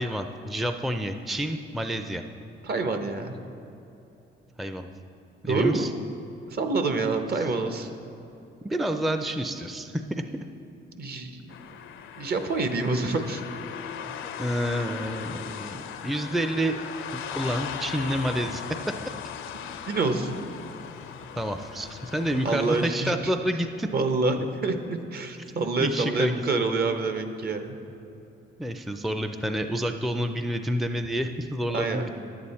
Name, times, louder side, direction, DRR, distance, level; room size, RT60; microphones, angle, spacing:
voice 1, 0.0-2.2 4.6-4.9 5.4-5.9 7.4-7.5 8.6-10.2 14.4-16.8 17.1-18.6 21.4-23.9 25.8-26.4 28.6-32.1, equal, ahead, 7 dB, 0.4 m, -29 dB
voice 2, 2.6-3.4 5.4-5.9 6.5-7.9 11.0-11.6 12.2-13.4 19.9-20.4 22.4-23.1 23.9-27.8 31.7-32.1, right 3 dB, 50° right, 7 dB, 0.9 m, -27 dB
sound 1, 11.5-22.9, left 8 dB, 80° left, 0.6 m, -38 dB
10.5 x 8.6 x 4.2 m, 2.9 s
cardioid pair, 90°, 20 cm